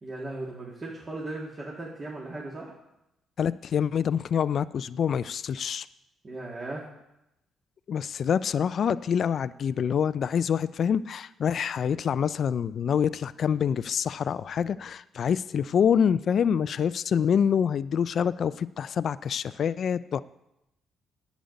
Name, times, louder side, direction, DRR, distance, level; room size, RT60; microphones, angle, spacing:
voice 1, 0.0-2.7 6.2-6.8, right 2 dB, 35° right, -4 dB, 2.1 m, -37 dB
voice 2, 3.4-5.9 7.9-20.2, left 7 dB, 55° left, 16 dB, 0.3 m, -26 dB
10.0 x 8.2 x 5.3 m, 0.88 s
cardioid pair, 90°, 0 cm